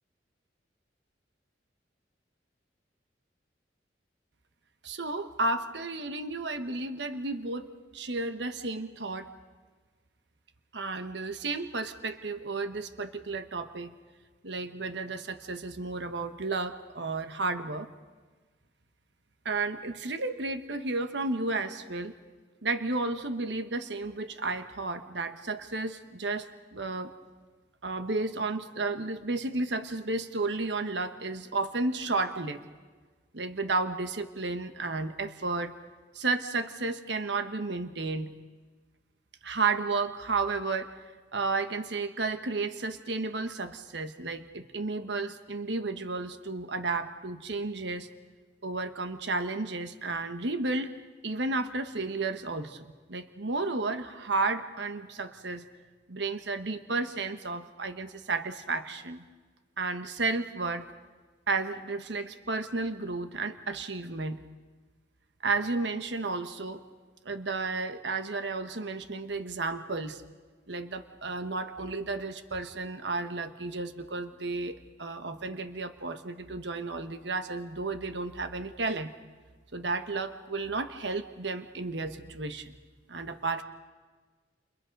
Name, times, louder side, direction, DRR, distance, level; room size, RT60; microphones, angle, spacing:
voice 1, 4.8-9.3 10.7-13.9 14.4-17.9 19.4-22.1 22.6-27.1 27.8-32.6 33.3-35.7 36.1-38.3 39.4-40.9 41.3-48.1 48.6-50.9 51.2-55.7 56.1-59.2 59.8-60.9 61.5-64.4 65.4-66.8 67.2-70.2 70.7-79.1 79.7-82.7 83.1-83.6, right 3 dB, 70° right, 9 dB, 1.3 m, -32 dB
29.0 x 28.5 x 5.3 m, 1.4 s
head